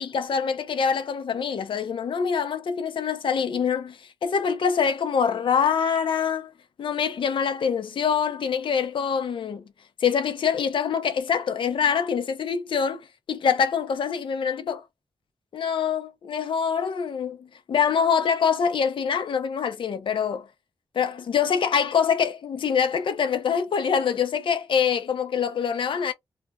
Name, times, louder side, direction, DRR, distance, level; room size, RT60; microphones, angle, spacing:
voice 1, 0.0-6.5 6.8-9.6 10.0-13.0 13.3-14.8 15.5-20.5 20.9-26.1, left 7 dB, 65° left, 0.5 m, -25 dB
2.3 x 2.1 x 3.4 m
wide cardioid pair, 135°, 9 cm